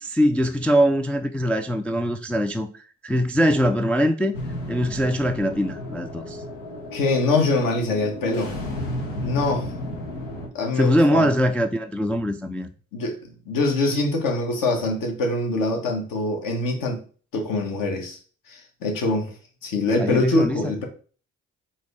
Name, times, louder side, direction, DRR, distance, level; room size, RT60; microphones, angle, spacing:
voice 1, 0.0-4.4 4.7-6.4 10.7-12.7 20.0-20.6, equal, 5° left, 0.3 m, -22 dB
sound 1, 4.3-10.5, left 1 dB, 80° left, 1.1 m, -33 dB
voice 2, 6.9-8.5 9.2-9.7 10.5-11.3 12.9-13.2 13.5-17.0 17.3-18.2 18.5-19.3 19.6-20.8, left 2 dB, 60° left, 1.3 m, -24 dB
4.0 x 2.8 x 3.4 m
hypercardioid pair, 45°, 38 cm